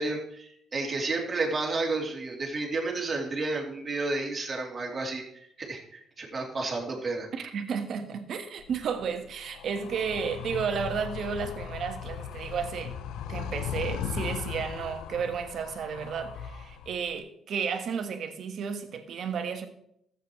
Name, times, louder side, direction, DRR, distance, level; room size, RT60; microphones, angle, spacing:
voice 1, 0.0-7.3, right 3 dB, 35° right, 3.0 m, -31 dB
voice 2, 7.3-12.9 13.3-19.7, right 6 dB, 65° right, 1.3 m, -32 dB
Animal, 8.6-17.2, left 9 dB, 90° left, 0.5 m, -38 dB
13.5 x 8.0 x 3.1 m
cardioid pair, 90°, 0 cm